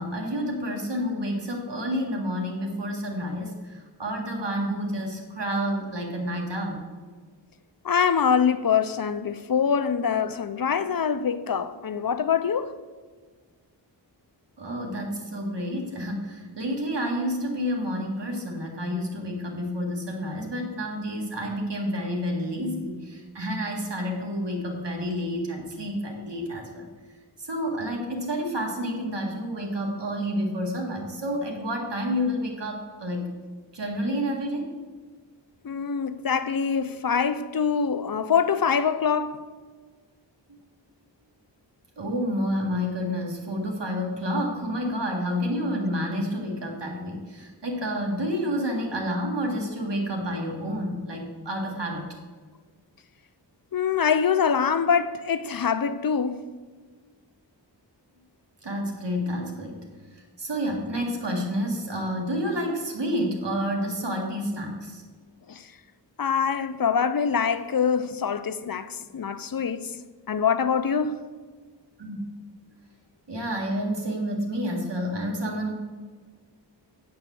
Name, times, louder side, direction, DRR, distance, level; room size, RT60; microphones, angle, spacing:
voice 1, 0.0-6.9 14.6-26.9 27.4-33.3 33.7-34.7 40.5-40.6 42.0-52.0 58.6-59.8 60.1-65.0 72.0-72.2 73.3-75.7, equal, 70° right, 1.9 m, -29 dB
voice 2, 7.8-12.7 35.6-39.4 53.7-56.4 65.5-65.6 66.2-69.9 70.3-71.2, left 7 dB, 55° left, 0.5 m, -24 dB
8.9 x 4.7 x 7.6 m
wide cardioid pair, 65°, 44 cm